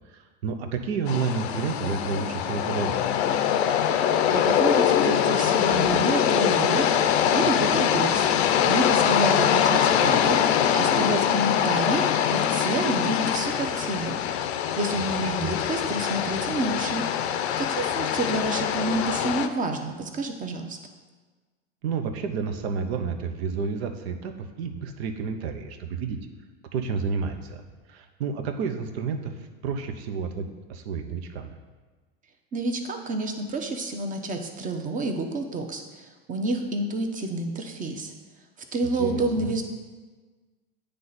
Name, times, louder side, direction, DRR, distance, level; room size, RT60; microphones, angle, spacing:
voice 1, 0.1-3.0 15.2-15.6 21.8-26.2 26.7-27.6 27.9-29.3 29.6-31.6 38.8-39.5, right 5 dB, 80° right, 6 dB, 0.8 m, -30 dB
sound 1, 1.1-19.5, left 9 dB, 90° left, 0.5 m, -23 dB
voice 2, 4.3-8.3 8.6-10.4 10.7-12.0 12.3-14.2 14.7-17.0 17.6-20.8 32.5-38.1 38.7-39.6, right 2 dB, 25° right, 5 dB, 0.8 m, -29 dB
9.3 x 3.3 x 4.0 m, 1.3 s
supercardioid pair, 120°, 31 cm